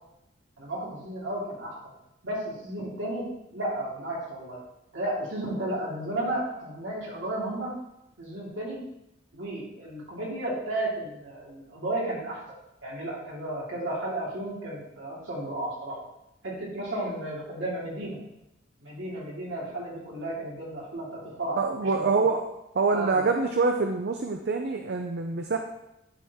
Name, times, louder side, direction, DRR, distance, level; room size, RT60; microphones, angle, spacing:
voice 1, 0.6-1.8 2.2-4.6 4.9-7.8 8.2-8.8 9.3-12.4 12.8-16.0 16.4-18.2 18.8-21.6 21.9-22.3 22.9-23.3, right 1 dB, 75° right, -5 dB, 2.7 m, -33 dB
voice 2, 21.5-22.4 22.8-25.6, right 4 dB, 60° right, 4 dB, 0.5 m, -25 dB
11.5 x 4.4 x 3.7 m, 0.88 s
head